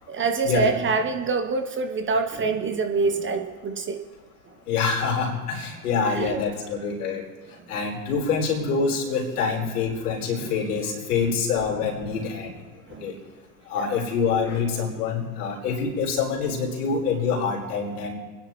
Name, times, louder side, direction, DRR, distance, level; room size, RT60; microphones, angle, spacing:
voice 1, 0.1-4.0 6.1-6.4 10.4-10.5 12.0-12.2 12.9-13.0 13.8-14.0, right 4 dB, 25° right, 6 dB, 1.0 m, -26 dB
voice 2, 4.7-7.2 7.7-12.5 13.0-13.1 13.7-18.1, left 5 dB, 70° left, -3 dB, 4.2 m, -26 dB
27.5 x 10.0 x 3.2 m, 1.3 s
hypercardioid pair, 90°, 47 cm